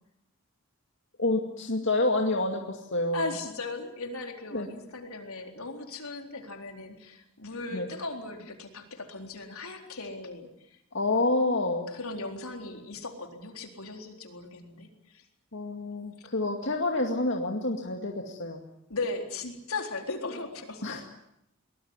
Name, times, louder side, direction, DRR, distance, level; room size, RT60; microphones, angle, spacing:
voice 1, 1.2-3.3 4.5-4.7 7.7-7.9 10.9-11.9 15.5-18.6 20.8-21.0, left 2 dB, 55° left, 2 dB, 2.3 m, -28 dB
voice 2, 3.1-10.5 11.9-15.2 16.2-16.3 18.9-20.8, left 3 dB, 80° left, 4 dB, 4.0 m, -37 dB
23.5 x 20.0 x 9.7 m, 0.80 s
head